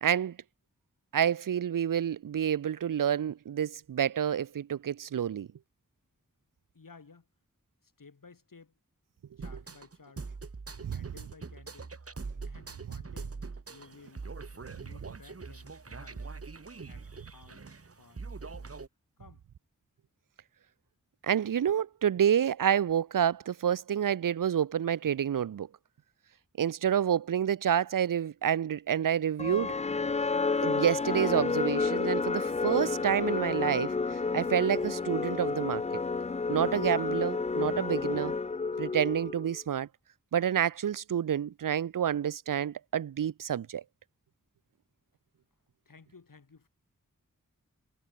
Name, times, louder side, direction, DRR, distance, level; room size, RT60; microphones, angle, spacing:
voice 1, 0.0-0.4 1.1-5.5 10.8-10.9 21.2-25.7 26.6-29.7 30.6-33.9 34.3-35.8 36.5-38.3 38.8-39.9 40.3-43.8, right 9 dB, 85° right, 0.6 m, -28 dB
voice 2, 6.7-7.3 7.8-8.8 9.4-10.2 10.9-11.9 12.4-13.4 13.7-16.3 16.8-17.7 17.9-18.8 19.2-19.5 45.8-46.7, left 4 dB, 85° left, 6.8 m, -56 dB
sound 1, 9.4-18.9, right 4 dB, 45° right, 1.5 m, -43 dB
sound 2, 29.4-39.6, left 4 dB, 20° left, 0.4 m, -30 dB
wide cardioid pair, 75°, 32 cm